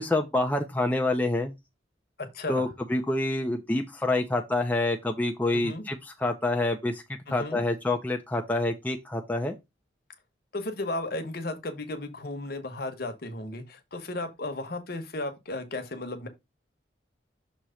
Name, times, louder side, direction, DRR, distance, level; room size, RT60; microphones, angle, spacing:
voice 1, 0.0-1.5 2.5-7.0 7.3-9.5, left 2 dB, 10° left, 0.5 m, -27 dB
voice 2, 2.2-2.7 5.5-5.8 7.3-7.6 10.5-16.3, left 2 dB, 50° left, 1.1 m, -34 dB
6.3 x 3.0 x 5.6 m
head